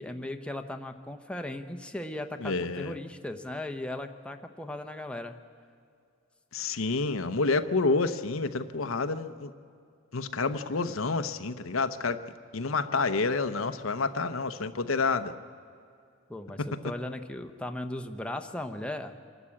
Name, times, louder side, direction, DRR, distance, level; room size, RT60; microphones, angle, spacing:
voice 1, 0.0-5.4 16.3-19.1, left 1 dB, 5° left, 5 dB, 0.9 m, -37 dB
voice 2, 2.4-2.9 6.5-9.5 10.1-12.2 12.5-15.3, left 3 dB, 85° left, 11 dB, 0.9 m, -29 dB
26.0 x 12.5 x 8.6 m, 2.4 s
head